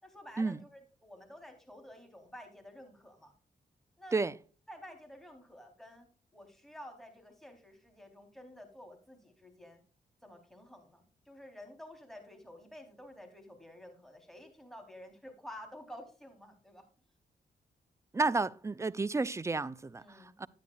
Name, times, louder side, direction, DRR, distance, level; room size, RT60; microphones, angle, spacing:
voice 1, 0.0-3.3 4.0-4.2 4.7-9.8 10.2-16.8 20.0-20.3, equal, ahead, 3.5 m, -51 dB
voice 2, 18.1-20.5, right 3 dB, 15° right, 0.5 m, -31 dB
11.0 x 9.5 x 2.4 m
supercardioid pair, 50°, 17 cm